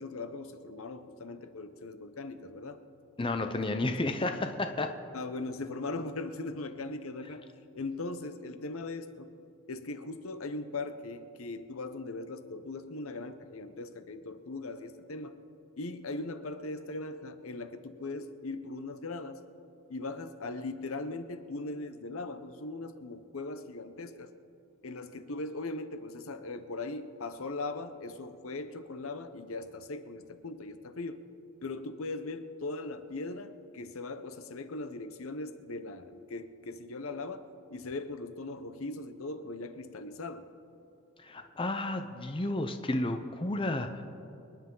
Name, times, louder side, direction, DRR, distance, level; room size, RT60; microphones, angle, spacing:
voice 1, 0.0-2.8 3.6-4.1 5.1-7.4 7.7-9.3 9.7-15.4 15.8-19.4 19.9-24.3 24.8-31.2 31.6-40.5, left 2 dB, 65° left, 10 dB, 0.8 m, -39 dB
voice 2, 3.2-4.9 41.2-44.0, left 2 dB, 25° left, 7 dB, 0.7 m, -32 dB
26.5 x 10.0 x 3.9 m, 2.7 s
head